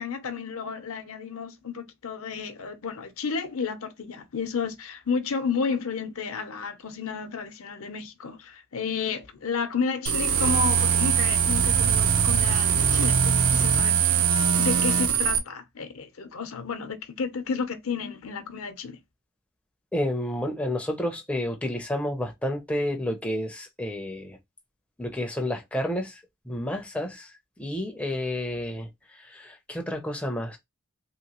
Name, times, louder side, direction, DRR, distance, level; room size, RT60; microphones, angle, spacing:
voice 1, 0.0-14.2 14.6-19.0, left 5 dB, 70° left, 0.6 m, -32 dB
sound 1, 10.1-15.4, right 7 dB, 75° right, 0.6 m, -22 dB
voice 2, 19.9-24.4 25.0-26.2 26.5-27.3 27.6-28.9 29.2-30.6, left 1 dB, 5° left, 0.4 m, -30 dB
2.9 x 2.9 x 2.8 m
head